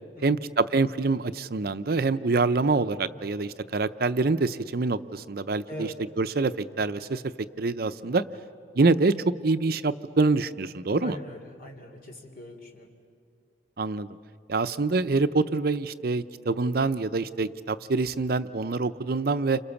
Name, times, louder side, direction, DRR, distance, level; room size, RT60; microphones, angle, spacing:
voice 1, 0.2-7.2 7.6-8.2 8.7-11.2 13.8-14.1 14.5-19.6, right 3 dB, 60° right, 12 dB, 0.7 m, -25 dB
voice 2, 11.0-12.9, left 1 dB, 55° left, 3 dB, 3.4 m, -41 dB
30.0 x 27.5 x 7.1 m, 2.4 s
head